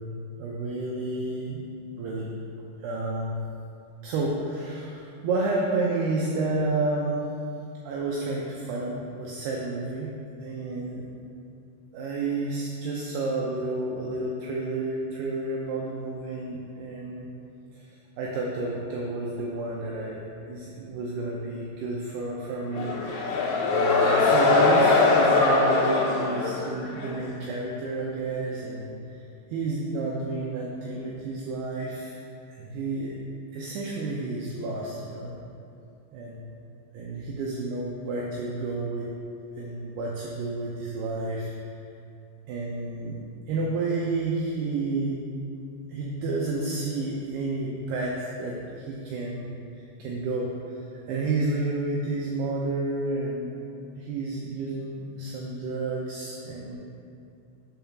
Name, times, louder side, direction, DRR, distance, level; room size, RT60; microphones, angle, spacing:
voice 1, 0.0-1.6 2.0-2.3 2.8-3.4 4.0-7.2 7.8-10.1 10.4-11.0 11.9-17.3 17.7-17.9 18.2-20.2 20.5-29.2 29.5-32.1 32.6-33.1 33.5-35.4 36.1-36.4 36.9-39.1 39.6-41.5 42.5-43.2 43.5-45.2 45.9-53.5 54.0-56.8, right 2 dB, 80° right, -3 dB, 2.3 m, -30 dB
sound 1, 22.7-27.2, left 3 dB, 85° left, 3.4 m, -22 dB
6.4 x 5.4 x 5.8 m, 2.5 s
omnidirectional pair, 5.4 m